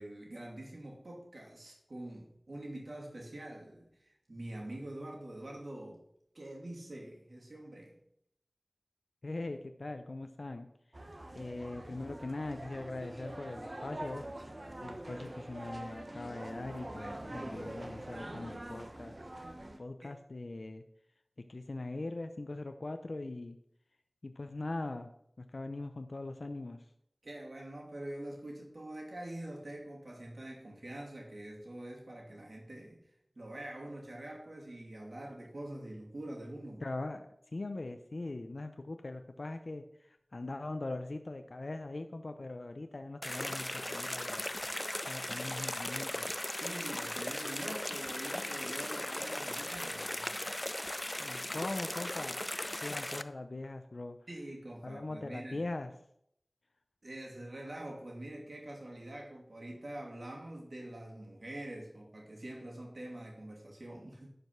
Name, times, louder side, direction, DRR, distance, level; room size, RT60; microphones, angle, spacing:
voice 1, 0.0-6.0 6.3-7.9 20.0-20.2 27.2-33.0 33.3-36.8 46.5-50.3 54.3-55.7 57.0-64.3, right 1 dB, 75° right, -1 dB, 2.6 m, -45 dB
voice 2, 9.2-10.7 11.3-14.2 14.8-19.2 19.8-20.8 21.5-23.6 24.2-25.1 25.4-26.8 36.8-37.3 37.5-44.5 44.7-46.3 51.2-52.4 52.8-54.2 54.8-55.9, left 2 dB, 75° left, 7 dB, 0.6 m, -41 dB
sound 1, 10.9-19.8, right 1 dB, 55° right, 1.2 m, -44 dB
sound 2, 43.2-53.2, left 1 dB, 25° left, 0.5 m, -38 dB
11.0 x 5.1 x 5.9 m, 0.73 s
wide cardioid pair, 50°, 0 cm